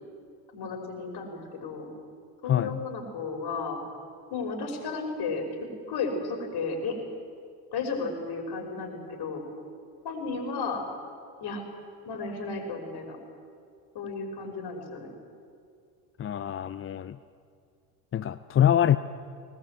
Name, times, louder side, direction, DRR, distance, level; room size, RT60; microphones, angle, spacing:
voice 1, 0.5-1.9 2.4-3.8 4.3-5.5 5.9-7.0 7.7-9.4 10.0-10.8 11.4-11.6 12.1-13.2 13.9-15.1, left 4 dB, 50° left, 3 dB, 5.5 m, -33 dB
voice 2, 2.5-2.8 16.2-17.2 18.1-19.0, left 10 dB, 25° left, 12 dB, 0.6 m, -24 dB
20.0 x 19.0 x 8.2 m, 2.3 s
hypercardioid pair, 75°, 49 cm